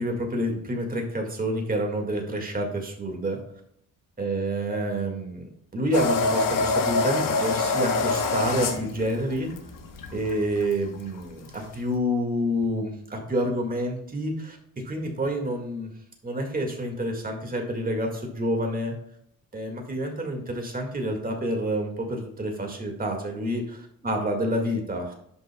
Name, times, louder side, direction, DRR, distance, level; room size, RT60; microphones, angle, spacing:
voice 1, 0.0-3.4 4.2-9.5 10.1-14.6 14.9-15.9 16.2-19.0 19.5-25.1, equal, 25° right, 2 dB, 1.9 m, -28 dB
sound 1, 5.9-12.0, left 3 dB, 70° left, 1.1 m, -26 dB
10.5 x 5.4 x 2.2 m, 0.70 s
cardioid pair, 110°, 33 cm